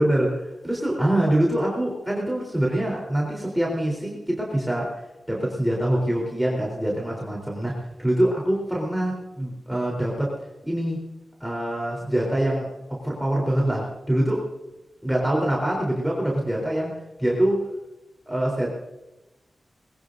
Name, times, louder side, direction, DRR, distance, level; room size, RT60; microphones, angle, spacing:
voice 1, 0.0-5.0 5.3-10.3 10.6-11.0 11.4-14.4 15.0-16.9 17.2-17.6 18.3-18.7, right 1 dB, 5° right, -3 dB, 3.9 m, -24 dB
21.5 x 18.5 x 2.7 m, 0.98 s
wide cardioid pair, 90°, 0 cm